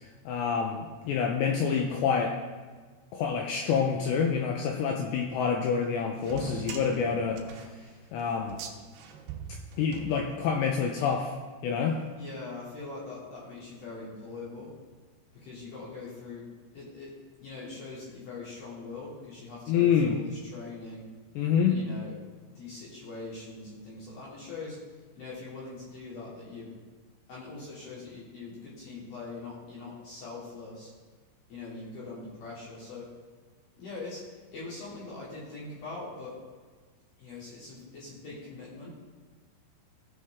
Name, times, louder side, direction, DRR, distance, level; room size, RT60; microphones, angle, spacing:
voice 1, 0.3-2.3 3.1-7.4 8.1-8.6 9.8-11.3 11.6-12.0 19.7-20.2 21.4-21.8, left 6 dB, 85° left, 2 dB, 2.6 m, -27 dB
sound 1, 6.2-10.7, right 6 dB, 85° right, 2.2 m, -42 dB
voice 2, 12.2-14.7 15.3-16.4 16.7-17.1 17.4-21.1 21.7-22.1 22.6-24.8 25.1-26.7 27.3-30.9 31.5-33.1 33.8-34.2 34.5-36.3 37.2-39.0, left 3 dB, 50° left, -8 dB, 4.1 m, -42 dB
17.0 x 6.5 x 3.5 m, 1.4 s
omnidirectional pair, 5.8 m